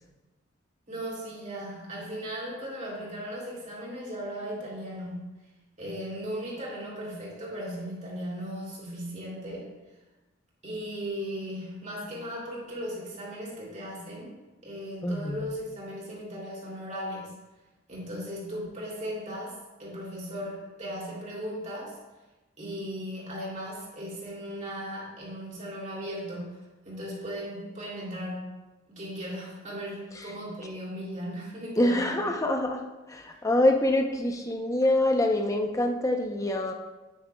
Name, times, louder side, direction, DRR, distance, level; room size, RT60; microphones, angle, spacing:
voice 1, 0.9-5.3 5.8-9.7 10.6-14.4 14.6-17.3 17.9-22.0 22.6-26.6 26.8-28.5 28.9-32.2, equal, 35° right, -5 dB, 2.8 m, -37 dB
voice 2, 15.0-15.4 30.2-30.3 31.8-32.8 33.1-36.7, left 1 dB, 15° left, 3 dB, 0.6 m, -25 dB
9.0 x 8.9 x 2.3 m, 1.1 s
head